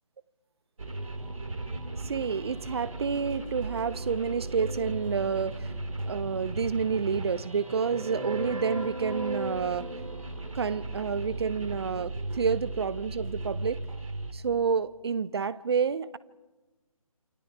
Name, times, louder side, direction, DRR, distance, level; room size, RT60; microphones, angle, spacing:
sound 1, 0.8-14.3, right 2 dB, 65° right, 3.4 m, -36 dB
voice 1, 2.0-5.6 6.1-9.9 10.5-13.8 14.3-16.2, right 6 dB, 45° right, 1.0 m, -29 dB
28.5 x 26.5 x 4.8 m
figure-of-eight pair, 150°, 18 cm